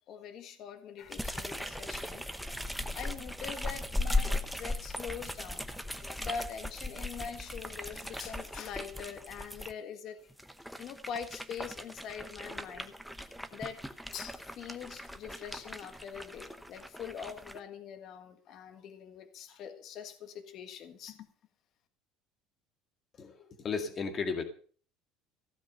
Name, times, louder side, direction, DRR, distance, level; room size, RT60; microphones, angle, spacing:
voice 1, 0.1-2.2 2.9-5.7 5.9-10.3 10.8-12.9 13.5-13.8 14.1-21.3, left 7 dB, 45° left, 1.6 m, -43 dB
sound 1, 1.1-9.7 10.3-17.6, left 1 dB, ahead, 0.9 m, -38 dB
voice 2, 23.2-24.4, left 5 dB, 30° left, 2.0 m, -34 dB
15.5 x 8.3 x 6.7 m
cardioid pair, 160°, 0 cm